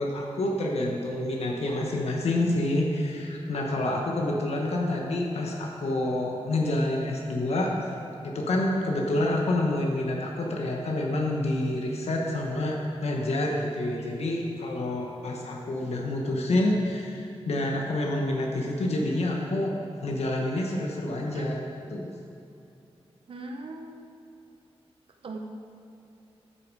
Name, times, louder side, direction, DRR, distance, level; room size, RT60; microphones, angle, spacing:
voice 1, 0.0-7.8 8.2-19.8 20.0-21.6 21.9-22.1, left 1 dB, 85° left, 0 dB, 1.3 m, -28 dB
voice 2, 23.3-24.0 25.2-25.4, right 2 dB, 60° right, 3 dB, 1.0 m, -39 dB
13.0 x 8.6 x 4.9 m, 2.7 s
wide cardioid pair, 180°, 11 cm